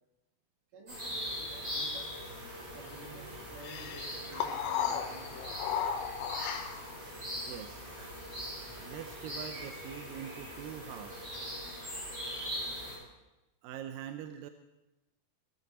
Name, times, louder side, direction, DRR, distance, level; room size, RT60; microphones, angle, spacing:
voice 1, 0.7-2.2 2.7-5.4 7.2-7.3, right 3 dB, 60° right, -1 dB, 4.1 m, -51 dB
sound 1, 0.9-13.0, equal, 40° right, 8.3 m, -41 dB
sound 2, 3.6-7.0, left 8 dB, 80° left, 2.8 m, -35 dB
voice 2, 7.3-8.0 8.8-11.2 13.6-14.5, right 10 dB, 80° right, 8 dB, 2.2 m, -44 dB
18.0 x 13.5 x 4.3 m, 1.0 s
omnidirectional pair, 4.3 m